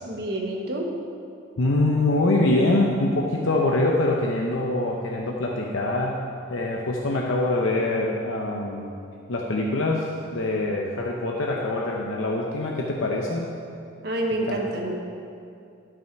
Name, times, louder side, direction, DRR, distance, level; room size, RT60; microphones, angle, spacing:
voice 1, 0.0-0.9 14.0-14.9, right 1 dB, 50° right, 0 dB, 1.2 m, -28 dB
voice 2, 1.6-6.1 6.5-8.9 9.3-13.5 14.5-14.6, left 2 dB, 80° left, -1 dB, 0.8 m, -24 dB
11.5 x 6.3 x 4.6 m, 2.5 s
head